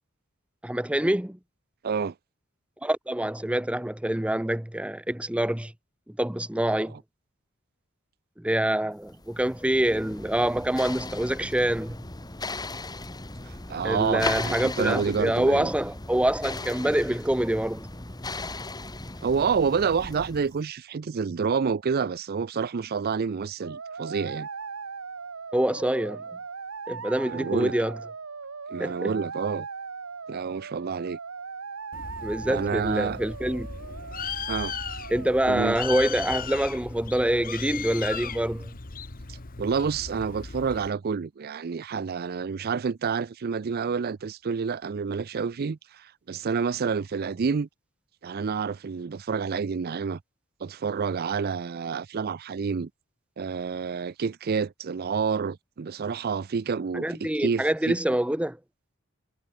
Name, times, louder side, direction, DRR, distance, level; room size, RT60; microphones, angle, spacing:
voice 1, 0.6-1.4 2.8-5.7 6.1-7.0 8.4-12.0 13.8-17.9 25.5-26.2 26.9-28.0 28.8-29.1 32.2-33.7 35.1-38.7 56.9-58.6, right 1 dB, 5° right, 0.8 m, -26 dB
voice 2, 1.8-2.1 13.7-15.7 19.2-24.5 27.3-27.7 28.7-29.7 30.3-31.2 32.5-33.2 34.5-34.8 35.5-35.8 39.6-47.7 48.2-50.2 50.6-52.9 53.4-58.0, right 5 dB, 50° right, 0.4 m, -28 dB
sound 1, 9.1-20.6, left 2 dB, 20° left, 2.0 m, -37 dB
sound 2, 23.6-35.7, right 5 dB, 75° right, 1.1 m, -39 dB
Bird, 31.9-40.9, left 6 dB, 45° left, 1.3 m, -37 dB
head